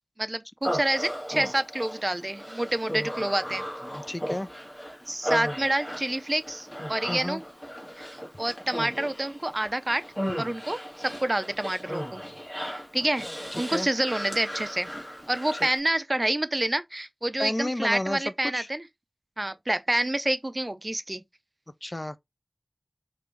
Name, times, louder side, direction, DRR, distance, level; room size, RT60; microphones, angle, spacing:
voice 1, 0.2-3.6 5.1-7.4 8.0-8.1 8.4-10.0 10.4-12.2 12.7-13.3 13.5-14.9 15.3-18.8 19.4-21.2, right 1 dB, 35° right, 0.5 m, -28 dB
Human voice, 0.6-15.8, equal, 5° left, 1.7 m, -36 dB
voice 2, 4.1-4.5 7.1-7.4 13.5-13.9 15.5-15.6 17.4-18.7 21.8-22.2, left 1 dB, 35° left, 0.4 m, -32 dB
4.7 x 2.5 x 3.1 m
wide cardioid pair, 55°, 0 cm